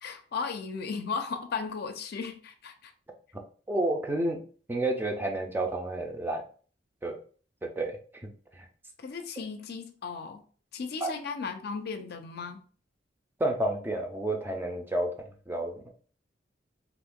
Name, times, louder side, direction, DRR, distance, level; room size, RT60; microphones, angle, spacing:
voice 1, 0.0-2.9 9.0-10.4 10.7-12.6, left 5 dB, 60° left, 6 dB, 0.5 m, -36 dB
voice 2, 3.7-4.4 4.7-6.4 7.0-7.2 7.6-8.3 8.6-8.7 11.0-11.1 13.4-15.1 15.5-15.9, right 1 dB, 10° right, 3 dB, 0.4 m, -30 dB
2.7 x 2.5 x 3.6 m, 0.41 s
head